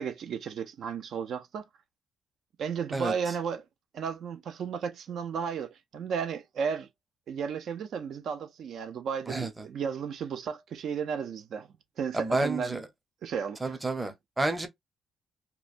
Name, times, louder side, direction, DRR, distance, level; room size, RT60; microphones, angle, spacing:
voice 1, 0.0-1.6 2.6-3.6 3.9-6.9 7.3-11.7 12.0-12.8 13.2-13.8, right 6 dB, 65° right, 0.5 m, -34 dB
voice 2, 12.1-12.8 13.6-14.7, right 2 dB, 15° right, 0.7 m, -30 dB
3.0 x 2.2 x 2.5 m
cardioid pair, 90°, 0 cm